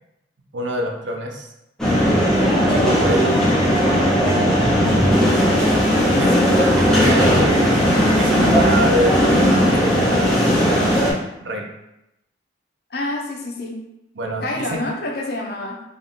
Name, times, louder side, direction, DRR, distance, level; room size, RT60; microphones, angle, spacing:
voice 1, 0.5-1.5 2.5-3.4 6.2-6.3 6.7-7.9 8.2-9.4 9.6-11.6 14.1-14.8, right 1 dB, 75° right, 2 dB, 0.6 m, -26 dB
sound 1, 1.8-11.1, equal, 5° left, 0.7 m, -17 dB
voice 2, 5.9-6.5 12.9-13.8 14.4-15.8, left 1 dB, 55° left, 1 dB, 0.6 m, -27 dB
4.0 x 2.4 x 3.6 m, 0.87 s
head